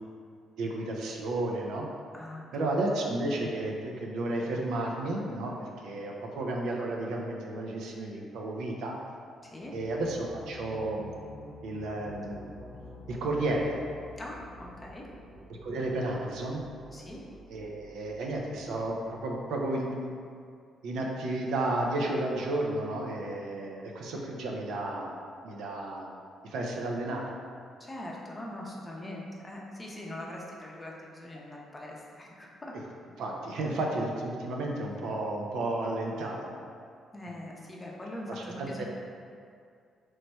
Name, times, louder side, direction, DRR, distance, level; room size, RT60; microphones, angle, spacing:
voice 1, 0.6-1.9 2.5-8.9 9.7-11.1 11.6-12.4 13.1-13.8 15.6-16.6 17.5-20.1 20.8-25.1 25.4-26.2 26.4-27.2 33.2-36.6 38.4-38.8, right 2 dB, 80° right, -1 dB, 0.5 m, -32 dB
voice 2, 2.1-2.5 9.4-9.7 14.2-15.0 16.9-17.2 27.8-32.7 37.1-38.8, left 1 dB, 20° left, -3 dB, 0.6 m, -42 dB
sound 1, 9.4-20.0, left 1 dB, 40° right, 0.9 m, -49 dB
3.1 x 2.2 x 4.2 m, 2.2 s
cardioid pair, 90°, 0 cm